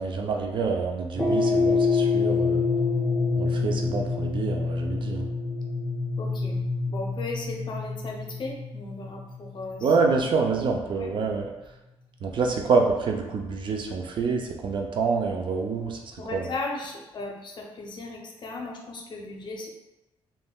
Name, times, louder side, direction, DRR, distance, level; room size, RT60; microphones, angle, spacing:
voice 1, 0.0-2.6 3.4-5.3 9.8-11.5 12.2-16.0 16.3-16.5, right 4 dB, 55° right, 2 dB, 0.4 m, -26 dB
sound 1, 1.2-9.6, left 4 dB, 10° left, 0.6 m, -26 dB
voice 2, 6.2-6.6 6.9-9.9 11.0-11.1 16.2-19.7, left 3 dB, 50° left, 0 dB, 0.6 m, -36 dB
3.5 x 2.1 x 2.3 m, 0.98 s
cardioid pair, 105°, 10 cm